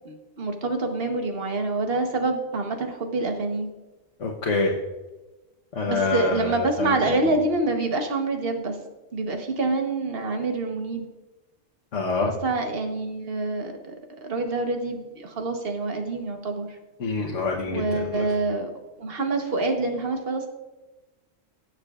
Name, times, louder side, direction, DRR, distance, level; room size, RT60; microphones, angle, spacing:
voice 1, 0.0-3.7 5.9-8.7 9.1-11.0 12.4-13.9 14.2-16.7 17.7-18.7 19.0-20.5, right 3 dB, 50° right, 4 dB, 1.3 m, -26 dB
voice 2, 4.2-4.8 5.7-7.3 11.9-12.3 17.0-18.3, left 3 dB, 70° left, -2 dB, 1.3 m, -26 dB
18.0 x 6.5 x 2.4 m, 1.1 s
omnidirectional pair, 1.3 m